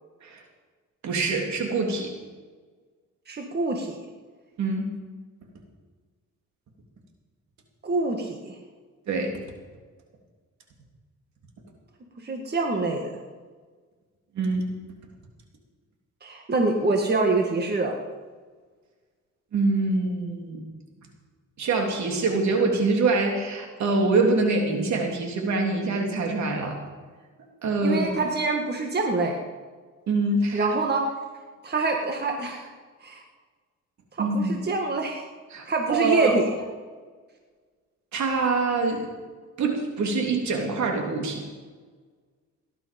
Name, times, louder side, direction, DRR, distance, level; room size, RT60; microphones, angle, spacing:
voice 1, 1.0-2.1 4.6-4.9 9.1-9.4 14.3-14.6 19.5-20.6 21.6-26.8 27.6-28.1 30.1-30.7 34.2-34.5 35.5-36.3 38.1-39.1 39.6-41.4, right 3 dB, 65° right, 1 dB, 3.3 m, -24 dB
voice 2, 3.3-4.0 7.8-8.6 12.2-13.1 16.2-18.0 27.8-29.4 30.5-31.0 31.6-32.7 33.0-33.2 34.2-35.2 35.7-36.5, right 3 dB, 35° right, 2 dB, 1.9 m, -25 dB
18.0 x 11.0 x 5.4 m, 1.4 s
cardioid pair, 90°, 30 cm